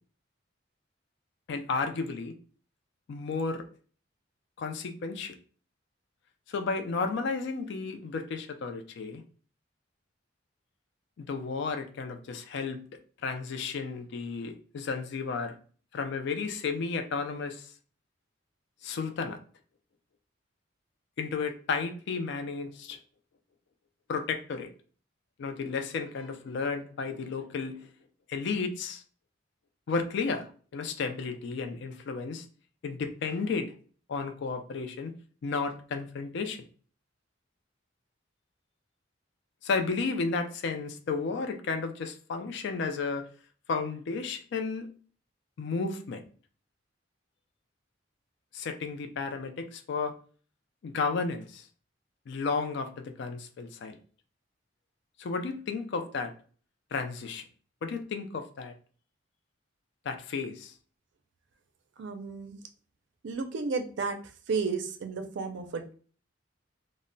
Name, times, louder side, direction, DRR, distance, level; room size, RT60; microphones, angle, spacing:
voice 1, 1.5-2.3 3.1-3.7 4.6-5.4 6.5-9.2 11.2-12.8 13.2-15.6 15.9-17.7 18.8-19.4 21.2-23.0 24.1-24.7 25.4-27.9 28.3-29.0 29.9-32.5 32.8-33.7 34.1-35.1 35.4-36.6 39.6-43.3 43.7-44.9 45.6-46.2 48.5-50.1 50.8-51.7 52.3-54.0 55.2-56.3 56.9-57.4 57.8-58.7 60.1-60.7, left 4 dB, 65° left, 6 dB, 0.4 m, -33 dB
voice 2, 62.0-62.6 63.2-64.2 64.5-65.9, right 4 dB, 65° right, 6 dB, 0.4 m, -32 dB
2.1 x 2.0 x 3.7 m, 0.42 s
head